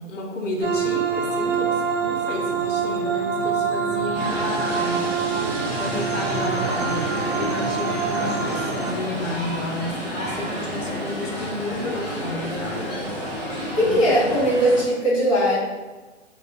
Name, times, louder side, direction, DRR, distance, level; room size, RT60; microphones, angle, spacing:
voice 1, 0.0-5.0 5.8-13.0 13.7-14.1, left 2 dB, 75° left, -1 dB, 0.7 m, -32 dB
sound 1, 0.6-8.9, right 6 dB, 90° right, 0.6 m, -25 dB
sound 2, 4.1-14.8, equal, 35° right, 0.5 m, -30 dB
voice 2, 13.7-15.6, equal, 25° left, -10 dB, 0.7 m, -19 dB
2.3 x 2.2 x 2.6 m, 1.3 s
hypercardioid pair, 180°, 37 cm